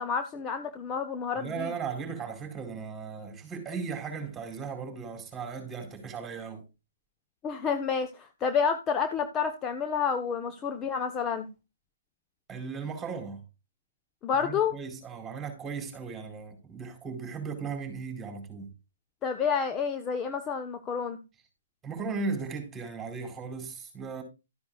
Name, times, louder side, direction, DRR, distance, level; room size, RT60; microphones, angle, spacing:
voice 1, 0.0-1.7 7.4-11.5 14.2-14.8 19.2-21.2, left 6 dB, 20° left, 1.1 m, -29 dB
voice 2, 1.4-6.7 12.5-13.4 14.3-18.7 21.8-24.2, right 5 dB, 10° right, 4.5 m, -37 dB
13.5 x 9.7 x 2.4 m
hypercardioid pair, 135°, 0 cm